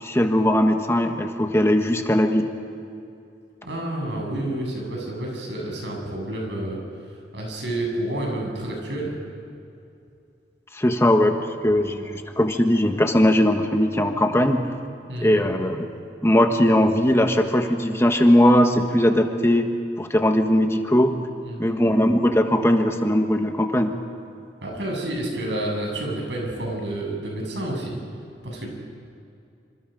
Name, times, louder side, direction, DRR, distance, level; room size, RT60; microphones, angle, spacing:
voice 1, 0.0-2.5 10.7-11.4 11.6-14.6 15.2-15.9 16.2-19.7 20.0-21.1 21.6-23.9, left 1 dB, 15° left, 5 dB, 1.3 m, -19 dB
voice 2, 3.6-6.8 7.1-9.1 15.1-15.5 21.4-21.8 24.6-28.0 28.4-28.7, right 1 dB, 85° right, 0 dB, 7.5 m, -29 dB
27.5 x 26.5 x 5.3 m, 2.6 s
head